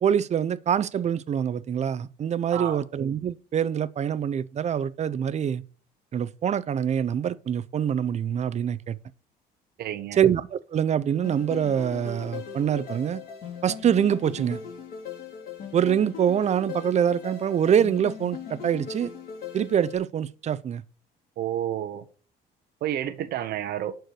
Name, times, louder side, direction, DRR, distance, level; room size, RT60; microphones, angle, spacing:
voice 1, 0.0-5.6 6.1-9.0 10.1-13.2 13.6-14.6 15.7-19.1 19.5-20.8, right 8 dB, 40° right, 0.7 m, -25 dB
voice 2, 2.5-2.8 9.8-10.2 21.4-22.0 22.8-24.0, right 11 dB, 70° right, 1.0 m, -30 dB
sound 1, 11.2-20.0, left 7 dB, 55° left, 3.5 m, -39 dB
11.5 x 4.7 x 6.4 m
cardioid pair, 110°, 17 cm